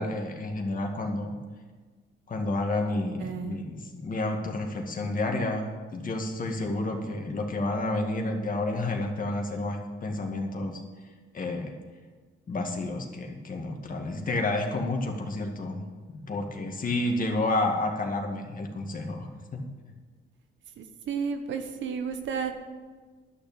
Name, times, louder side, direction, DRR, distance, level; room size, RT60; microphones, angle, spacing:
voice 1, 0.0-1.4 2.3-10.8 11.3-11.7 12.5-15.8 16.3-19.6, left 2 dB, 45° left, 3 dB, 2.2 m, -30 dB
voice 2, 3.2-3.6 20.8-22.5, right 6 dB, 70° right, 7 dB, 1.4 m, -32 dB
11.5 x 6.8 x 8.9 m, 1.4 s
cardioid pair, 90°, 20 cm